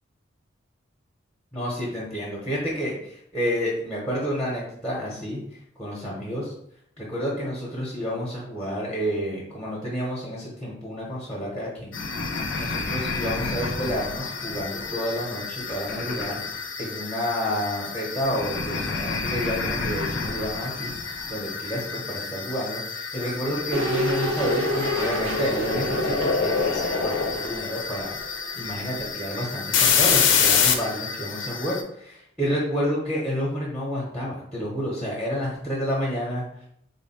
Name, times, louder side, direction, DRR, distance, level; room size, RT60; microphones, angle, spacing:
voice 1, 1.5-6.5 7.0-11.9 12.5-20.9 21.3-36.7, equal, 5° left, -5 dB, 0.7 m, -30 dB
sound 1, 11.9-31.8, left 5 dB, 70° left, 0.5 m, -28 dB
sound 2, 23.7-28.7 29.0-29.1, equal, 80° right, 0.7 m, -29 dB
3.9 x 2.1 x 4.0 m, 0.72 s
head